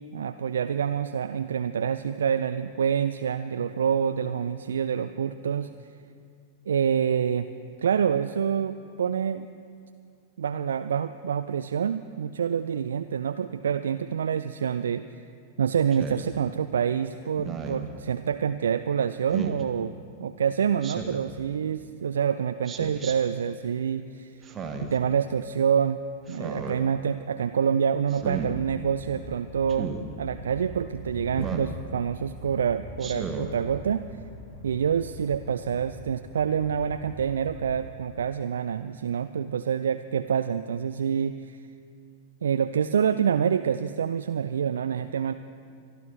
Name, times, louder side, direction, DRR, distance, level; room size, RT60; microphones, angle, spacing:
voice 1, 0.1-5.7 6.7-7.5 7.8-9.5 10.4-15.0 15.6-19.9 20.2-24.3 24.8-26.0 26.3-29.9 30.2-34.1 34.6-41.6 42.4-45.3, right 7 dB, 70° right, 10 dB, 0.3 m, -27 dB
Speech synthesizer, 15.9-16.3 17.4-17.9 19.3-19.6 20.8-21.3 22.6-23.1 24.4-25.0 26.3-26.8 28.1-28.5 29.7-30.0 31.3-31.7 33.0-33.5, right 5 dB, 20° right, 1.3 m, -34 dB
sound 1, 28.1-37.9, left 1 dB, 55° left, 3.4 m, -43 dB
23.5 x 12.0 x 3.2 m, 2.3 s
figure-of-eight pair, 95°, 0 cm